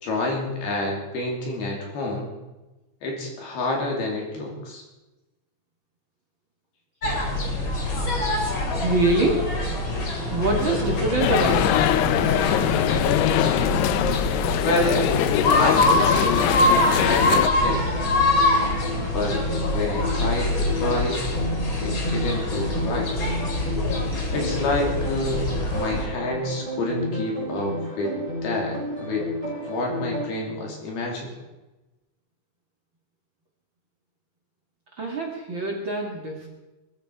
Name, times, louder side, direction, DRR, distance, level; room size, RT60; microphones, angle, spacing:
voice 1, 0.0-2.3 3.0-4.8 14.6-15.1 15.6-17.8 19.1-21.2 21.8-23.1 24.3-28.2 28.4-29.2 29.6-31.3, left 2 dB, 55° left, 0 dB, 4.7 m, -28 dB
sound 1, 7.0-26.1, left 1 dB, 35° left, 2.3 m, -24 dB
voice 2, 8.8-9.5 10.3-11.8 35.0-36.5, right 2 dB, 70° right, -1 dB, 1.1 m, -24 dB
sound 2, 11.2-17.5, left 11 dB, 80° left, 2.4 m, -22 dB
sound 3, 16.5-30.3, left 1 dB, 10° left, 7.1 m, -32 dB
20.0 x 15.0 x 4.8 m, 1.1 s
omnidirectional pair, 5.6 m